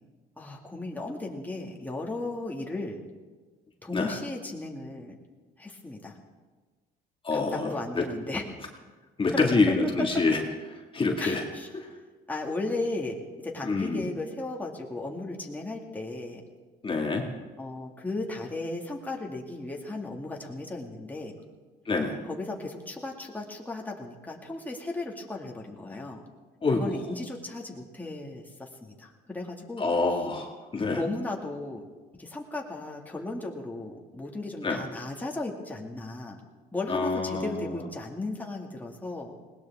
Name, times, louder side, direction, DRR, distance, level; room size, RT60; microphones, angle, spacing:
voice 1, 0.4-3.0 3.8-5.1 5.6-6.2 7.3-8.5 9.3-9.7 11.2-11.7 12.3-16.4 17.6-21.3 22.3-26.2 26.7-29.9 30.9-31.9 32.2-36.4 36.7-39.5, left 2 dB, 10° left, -1 dB, 2.1 m, -35 dB
voice 2, 7.2-8.1 9.2-10.4 10.7-11.4 11.7-11.9 13.6-14.1 16.8-17.3 21.9-22.2 26.6-26.9 29.8-31.0 34.6-34.8 36.9-37.7, left 3 dB, 30° left, 1 dB, 1.9 m, -27 dB
20.0 x 18.5 x 3.6 m, 1.3 s
cardioid pair, 100°, 18 cm